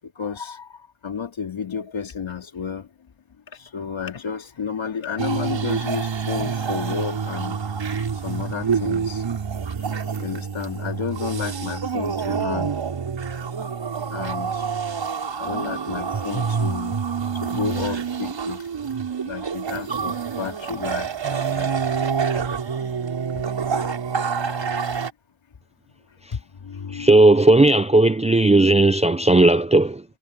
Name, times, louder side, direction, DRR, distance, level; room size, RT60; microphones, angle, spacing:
voice 1, 0.0-2.9 3.5-7.6 8.2-9.3 10.2-12.8 14.1-14.6 15.4-17.0 17.4-18.7 19.2-22.3 23.3-23.4 26.3-27.1, left 6 dB, 75° left, 3.4 m, -32 dB
sound 1, 5.2-25.1, right 6 dB, 65° right, 5.4 m, -27 dB
voice 2, 26.9-30.0, right 2 dB, 15° right, 0.4 m, -15 dB
wide cardioid pair, 165°, 47 cm